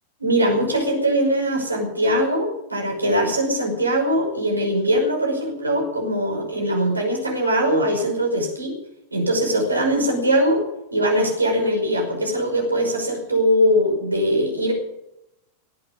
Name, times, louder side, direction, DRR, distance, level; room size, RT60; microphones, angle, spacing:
voice 1, 0.2-8.8 9.1-10.6 10.9-14.7, equal, 80° right, 1 dB, 5.6 m, -21 dB
19.0 x 8.8 x 8.4 m, 0.87 s
figure-of-eight pair, 90°, 0 cm